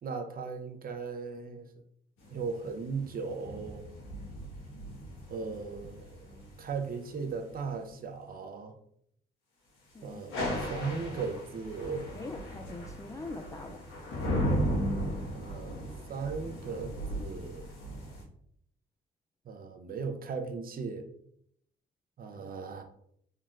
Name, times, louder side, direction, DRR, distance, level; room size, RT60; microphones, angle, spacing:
voice 1, 0.0-1.7 2.3-3.8 5.3-8.8 10.0-12.2 15.3-17.7 19.5-21.1 22.2-22.8, right 5 dB, 45° right, 0.6 m, -37 dB
sound 1, 2.2-7.7 10.1-18.2, equal, 85° left, 1.4 m, -36 dB
voice 2, 9.9-10.2 12.1-13.9, left 2 dB, 15° left, 0.3 m, -43 dB
4.1 x 3.7 x 2.4 m
cardioid pair, 90°, 20 cm